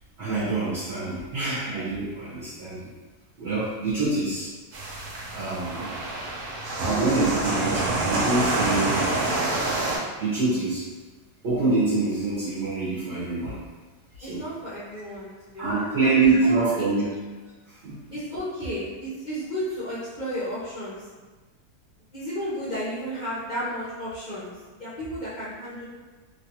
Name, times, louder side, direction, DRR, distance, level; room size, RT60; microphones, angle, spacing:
voice 1, 0.2-2.9 3.4-4.5 5.3-5.9 6.8-9.2 10.2-10.8 11.4-13.6 14.2-14.4 15.6-17.1 17.7-18.0, right 3 dB, 50° right, -10 dB, 1.0 m, -25 dB
sound 1, 4.7-10.0, right 2 dB, 80° right, 1.2 m, -27 dB
voice 2, 14.2-16.9 18.1-21.1 22.1-25.8, equal, 40° left, -11 dB, 0.6 m, -33 dB
3.2 x 2.3 x 2.8 m, 1.3 s
omnidirectional pair, 1.7 m